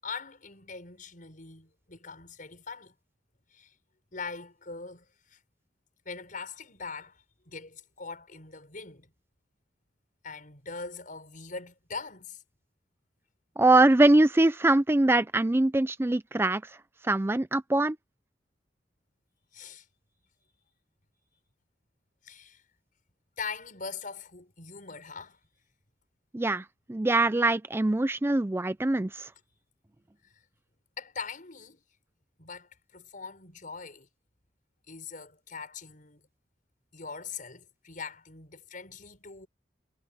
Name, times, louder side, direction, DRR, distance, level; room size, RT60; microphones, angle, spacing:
voice 1, 0.0-2.9 3.5-3.7 4.1-5.4 6.0-9.1 10.2-12.4 19.5-19.9 22.2-22.6 23.4-25.4 29.3-29.4 31.0-31.8 32.4-34.1 34.9-36.2 36.9-39.5, left 5 dB, 50° left, 6.4 m, -42 dB
voice 2, 13.6-16.6 17.0-18.0 26.3-29.3, right 2 dB, 15° right, 0.4 m, -23 dB
head